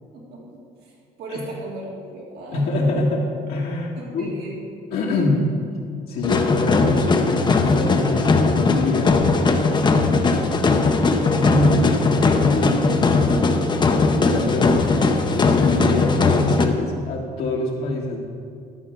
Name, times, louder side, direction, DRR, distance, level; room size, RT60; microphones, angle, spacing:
voice 1, 0.1-0.6 1.2-3.0 4.0-4.5, right 2 dB, 70° right, -3 dB, 2.4 m, -36 dB
voice 2, 2.5-4.4 4.9-5.5 6.1-9.1 11.3-11.9 12.5-12.8 14.1-14.9 15.3-18.2, left 2 dB, 70° left, -3 dB, 1.5 m, -24 dB
sound 1, 6.2-16.7, left 3 dB, 25° left, 0.7 m, -19 dB
11.5 x 4.8 x 6.1 m, 2.3 s
cardioid pair, 110°, 17 cm